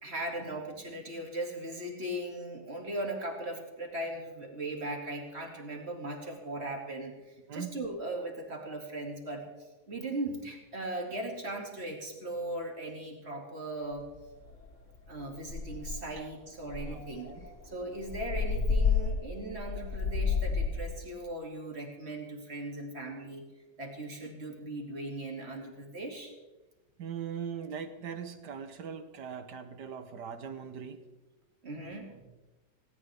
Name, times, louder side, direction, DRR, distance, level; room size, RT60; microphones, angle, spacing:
voice 1, 0.0-9.4 9.9-14.1 15.1-17.3 17.6-23.5 23.8-26.3 31.6-32.2, right 1 dB, 30° right, 1 dB, 2.7 m, -38 dB
sound 1, 14.0-14.1 14.5-14.7 15.1-15.2 15.5-16.1 16.7-20.9, left 5 dB, 40° left, 1.6 m, -30 dB
voice 2, 16.9-17.4 27.0-31.0, right 7 dB, 60° right, 10 dB, 1.5 m, -40 dB
18.0 x 18.0 x 3.5 m, 1.1 s
omnidirectional pair, 2.3 m